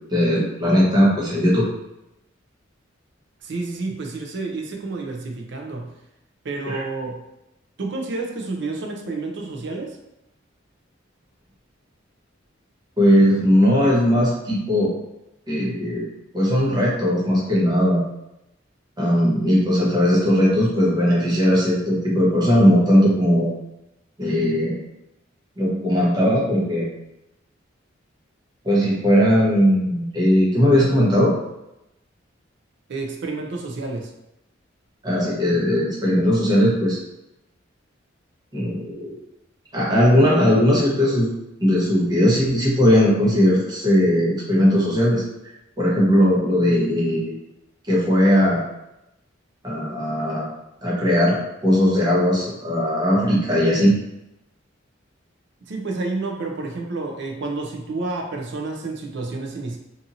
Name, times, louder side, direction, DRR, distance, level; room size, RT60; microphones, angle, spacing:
voice 1, 0.1-1.7 6.6-6.8 13.0-14.9 15.5-16.1 16.3-18.0 19.0-23.5 24.2-24.8 25.6-26.9 28.6-31.3 35.0-37.0 38.5-39.1 39.7-41.3 41.6-45.2 45.8-47.3 47.9-48.6 49.6-50.5 50.8-51.4 51.6-53.9, equal, 20° right, -6 dB, 0.9 m, -18 dB
voice 2, 3.4-5.9 6.4-7.2 7.8-10.0 32.9-34.1 55.7-59.8, right 3 dB, 60° right, 2 dB, 0.5 m, -30 dB
2.7 x 2.6 x 2.6 m, 0.89 s
head